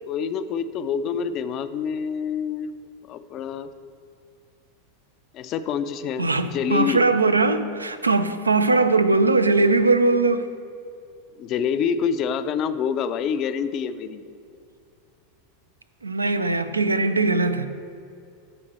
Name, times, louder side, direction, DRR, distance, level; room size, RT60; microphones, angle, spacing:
voice 1, 0.1-2.7 3.1-3.7 5.3-6.3 6.5-7.0 11.4-14.2, left 7 dB, 40° left, 0.4 m, -26 dB
voice 2, 6.2-10.5 16.0-17.7, right 3 dB, 90° right, 0.4 m, -20 dB
8.6 x 3.9 x 4.3 m
figure-of-eight pair, 90°, 0 cm